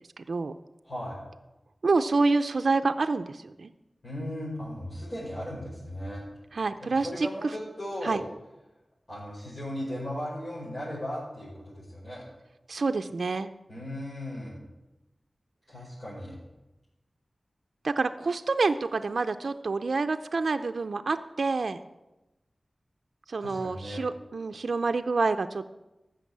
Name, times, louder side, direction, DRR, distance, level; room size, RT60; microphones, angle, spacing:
voice 1, 0.2-0.5 1.8-3.7 6.5-7.3 8.0-8.2 12.7-13.5 17.8-21.8 23.3-25.7, right 3 dB, 80° right, 9 dB, 0.5 m, -27 dB
voice 2, 0.8-1.2 4.0-6.2 6.8-8.2 9.1-12.2 13.7-14.6 15.7-16.4 23.4-24.0, equal, 50° left, -8 dB, 5.2 m, -37 dB
14.0 x 6.4 x 7.4 m, 1.0 s
wide cardioid pair, 85°, 0 cm